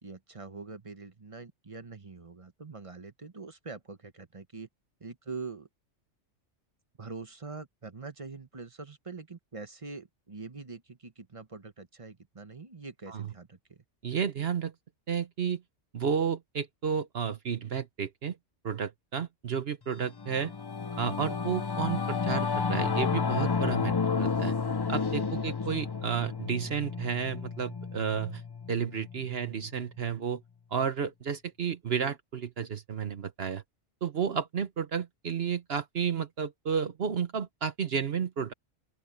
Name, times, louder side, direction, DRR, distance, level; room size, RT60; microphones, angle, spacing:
voice 1, 0.0-4.7 5.0-5.7 7.0-13.8 25.4-25.5, right 4 dB, 30° right, 1.0 m, -44 dB
voice 2, 14.0-14.7 15.1-15.6 15.9-18.4 18.6-20.5 21.0-24.5 24.9-28.4 28.7-30.4 30.7-33.6 34.0-38.5, right 7 dB, 60° right, 1.1 m, -32 dB
Singing / Musical instrument, 20.0-29.7, left 5 dB, 35° left, 0.4 m, -31 dB
open air
omnidirectional pair, 1.2 m